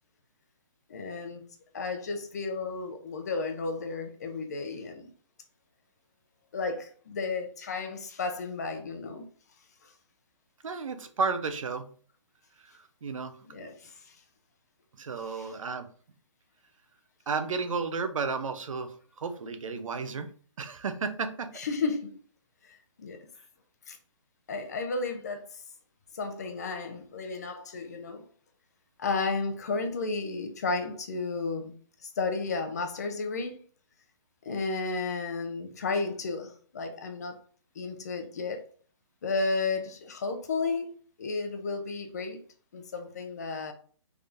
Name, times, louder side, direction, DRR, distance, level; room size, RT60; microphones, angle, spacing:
voice 1, 0.9-1.5 1.7-5.1 6.5-9.3 9.8-9.9 13.5-14.1 15.3-15.5 21.6-22.1 22.6-23.2 23.9-24.0 24.5-25.6 26.1-28.2 29.0-31.7 32.0-33.6 34.4-37.4 37.8-38.6 39.2-42.4 42.7-43.7, left 3 dB, 30° left, 0.5 m, -33 dB
voice 2, 10.6-11.9 13.0-13.3 13.6-13.7 15.0-15.9 17.3-20.3 20.6-21.5, right 4 dB, 80° right, 0.7 m, -32 dB
3.5 x 2.6 x 3.4 m
hypercardioid pair, 170°, 17 cm